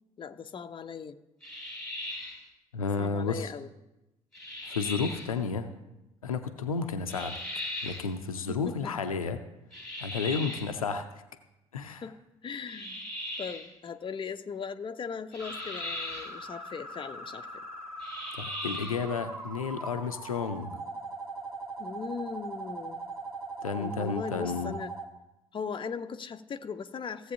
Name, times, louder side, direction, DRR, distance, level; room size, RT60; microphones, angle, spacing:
voice 1, 0.2-1.2 3.0-3.7 8.5-9.1 10.4-10.6 11.8-13.0 13.4-17.5 21.8-23.1 23.8-24.9 25.5-27.3, left 6 dB, 30° left, 8 dB, 0.6 m, -39 dB
sound 1, 1.4-2.5 4.3-5.3 7.1-8.1 9.7-10.8 12.7-13.7 15.3-16.4 18.0-19.1, left 1 dB, 5° left, 2.4 m, -38 dB
voice 2, 2.7-3.5 4.7-5.7 6.2-7.4 7.8-9.4 10.0-11.0 11.7-12.0 18.4-20.7 23.6-24.7, left 5 dB, 80° left, 8 dB, 0.5 m, -32 dB
sound 2, 15.4-25.0, right 2 dB, 85° right, 0.8 m, -40 dB
15.5 x 7.8 x 2.7 m, 0.96 s
figure-of-eight pair, 45°, 18 cm